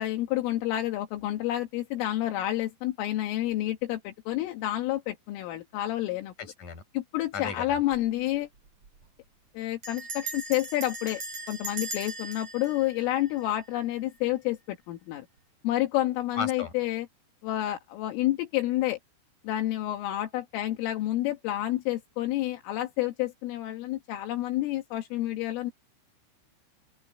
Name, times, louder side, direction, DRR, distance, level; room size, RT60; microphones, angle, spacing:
voice 1, 0.0-6.3 6.9-8.5 9.6-11.2 11.5-15.3 15.6-17.1 17.4-19.0 19.4-25.7, left 14 dB, 80° left, 4.1 m, -29 dB
voice 2, 6.4-6.8 7.3-7.8 16.3-16.7, left 6 dB, 40° left, 6.6 m, -35 dB
Bell, 7.7-8.1 8.3-8.4 8.7-9.0 9.8-13.9, right 2 dB, 35° right, 4.7 m, -39 dB
open air
omnidirectional pair, 5.9 m